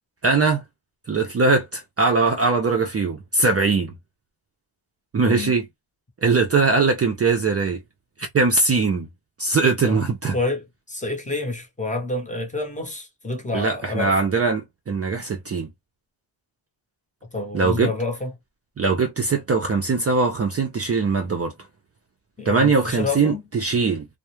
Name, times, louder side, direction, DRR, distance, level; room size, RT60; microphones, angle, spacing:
voice 1, 0.2-0.6 1.1-3.9 5.1-5.6 6.2-7.8 8.2-9.1 9.4-10.3 13.5-15.7 17.5-17.9 18.8-21.5 22.5-24.1, right 4 dB, 35° right, 0.4 m, -21 dB
voice 2, 5.2-5.6 9.8-10.1 10.3-14.2 17.3-18.3 22.4-23.4, left 3 dB, 15° left, 0.7 m, -28 dB
2.3 x 2.1 x 3.0 m
wide cardioid pair, 125°, 46 cm